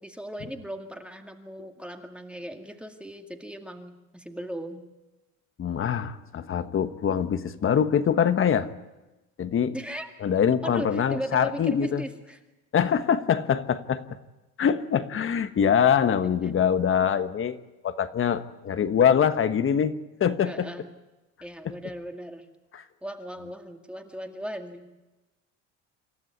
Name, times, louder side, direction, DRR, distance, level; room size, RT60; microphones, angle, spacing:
voice 1, 0.0-4.8 9.7-10.1 10.6-12.4 16.4-16.5 20.4-20.9 21.4-22.5 23.0-24.9, equal, 5° right, 4 dB, 2.1 m, -37 dB
voice 2, 5.6-8.7 9.4-9.7 10.2-12.0 12.7-14.0 14.6-17.6 17.8-20.7 22.7-22.8, left 8 dB, 35° left, 11 dB, 1.4 m, -24 dB
27.0 x 13.5 x 9.5 m, 1.1 s
cardioid pair, 115°, 36 cm